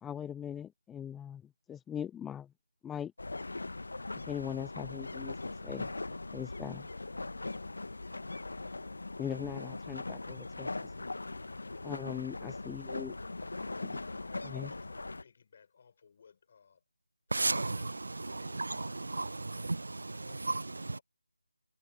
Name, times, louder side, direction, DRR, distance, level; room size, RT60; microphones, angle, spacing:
voice 1, 0.0-2.5 2.8-3.1 4.2-5.9 6.3-6.9 9.2-10.9 11.8-13.2 13.8-14.0 14.4-14.7, left 9 dB, 5° left, 0.3 m, -41 dB
sound 1, 3.2-15.2, left 2 dB, 70° left, 1.1 m, -40 dB
voice 2, 11.7-12.3 13.9-16.8 17.3-18.6 19.2-19.8 20.2-21.0, left 6 dB, 35° left, 5.8 m, -60 dB
voice 3, 17.3-21.0, right 3 dB, 65° right, 0.7 m, -35 dB
figure-of-eight pair, 165°, 0 cm